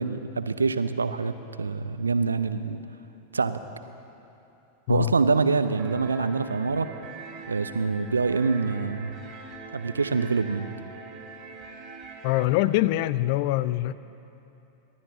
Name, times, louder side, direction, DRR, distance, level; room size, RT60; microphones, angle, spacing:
voice 1, 0.0-2.8 3.3-3.6 4.9-6.9 7.5-9.2 9.7-10.7, right 4 dB, 75° right, 11 dB, 0.7 m, -25 dB
sound 1, 5.8-12.5, right 4 dB, 30° right, 2.8 m, -43 dB
voice 2, 12.2-13.9, left 16 dB, 45° left, 16 dB, 0.4 m, -24 dB
29.0 x 12.5 x 3.9 m, 2.9 s
figure-of-eight pair, 90°, 0 cm